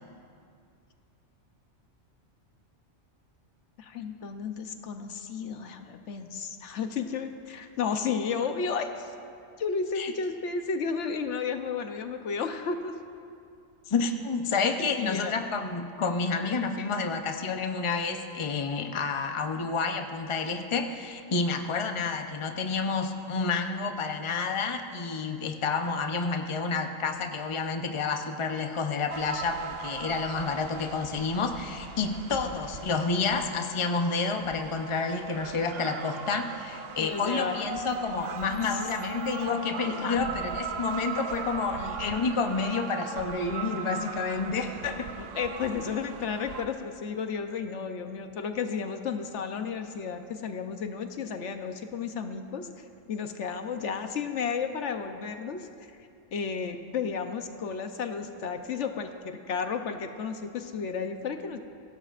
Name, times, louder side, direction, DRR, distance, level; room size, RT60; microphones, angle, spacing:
voice 1, 3.8-9.1 9.6-12.9 15.0-15.3 32.4-32.6 37.0-37.7 38.7-38.8 40.0-40.3 45.2-55.7 56.3-61.6, left 5 dB, 75° left, 7 dB, 1.1 m, -33 dB
voice 2, 13.9-45.1, left 4 dB, 30° left, 5 dB, 0.7 m, -29 dB
sound 1, 29.1-46.7, right 6 dB, 60° right, 0.8 m, -39 dB
22.5 x 16.5 x 2.5 m, 2.4 s
omnidirectional pair, 1.2 m